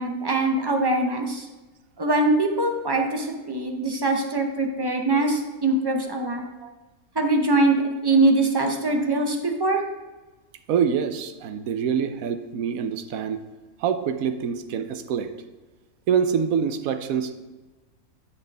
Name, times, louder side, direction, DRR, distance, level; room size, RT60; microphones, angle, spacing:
voice 1, 0.0-1.4 2.0-6.4 7.2-9.8, right 2 dB, 30° right, 3 dB, 0.4 m, -22 dB
voice 2, 10.7-13.4 13.8-15.3 16.1-17.3, right 7 dB, 70° right, 8 dB, 1.1 m, -25 dB
9.4 x 5.9 x 3.4 m, 1.2 s
omnidirectional pair, 1.6 m